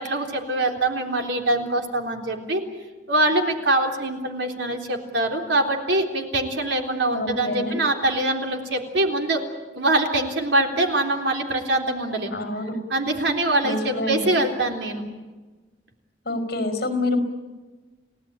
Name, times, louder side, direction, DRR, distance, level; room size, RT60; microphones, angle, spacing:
voice 1, 0.0-2.6 3.1-9.4 9.8-12.3 12.9-15.0, right 2 dB, 80° right, 2 dB, 3.6 m, -23 dB
voice 2, 7.1-7.8 12.3-12.7 13.6-14.3 16.2-17.2, left 2 dB, 60° left, 7 dB, 5.0 m, -26 dB
30.0 x 17.5 x 8.9 m, 1.3 s
head